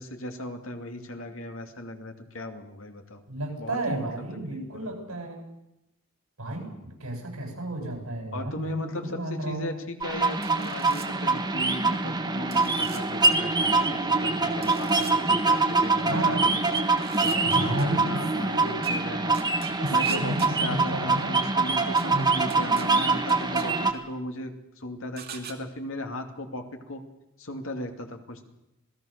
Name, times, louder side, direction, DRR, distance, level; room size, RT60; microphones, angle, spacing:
voice 1, 0.0-3.2 3.6-4.1 4.5-4.9 8.3-16.4 16.7-16.8 17.2-19.4 19.9-27.0 27.4-28.4, left 1 dB, 70° left, 5 dB, 2.6 m, -37 dB
voice 2, 3.3-5.4 6.4-6.7 7.0-9.7 16.1-16.5 17.4-18.8 19.8-21.4 22.1-22.4, right 1 dB, 80° right, 2 dB, 7.8 m, -32 dB
sound 1, 10.0-23.9, right 3 dB, 20° right, 1.7 m, -24 dB
sound 2, 10.4-11.1 12.5-13.0 14.6-15.1 16.7-17.8 18.8-18.9 19.3-20.5 22.0-22.1 22.5-22.8 23.3-23.6 25.2-25.5, right 8 dB, 45° right, 2.4 m, -42 dB
27.0 x 18.5 x 6.7 m, 0.90 s
head